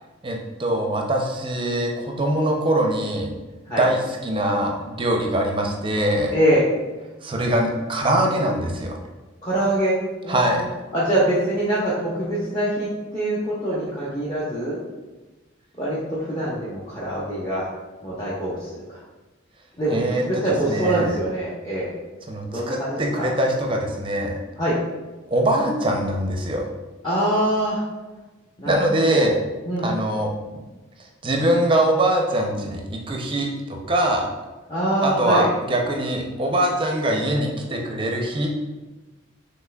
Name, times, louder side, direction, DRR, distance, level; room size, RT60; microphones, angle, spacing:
voice 1, 0.2-3.3 3.8-6.3 7.2-9.0 10.3-10.7 19.9-21.1 22.3-24.4 25.3-26.7 28.7-29.3 29.8-30.6 31.2-33.5 33.9-34.2 35.0-38.5, right 1 dB, 25° right, 1 dB, 0.5 m, -23 dB
voice 2, 6.3-6.6 9.4-10.0 10.2-10.6 10.9-14.8 15.8-17.7 18.0-19.0 19.8-21.9 22.5-23.3 24.6-24.7 27.0-27.8 28.6-29.3 29.7-29.9 34.7-35.5, right 1 dB, 20° left, -9 dB, 0.8 m, -24 dB
5.6 x 3.2 x 2.3 m, 1.2 s
head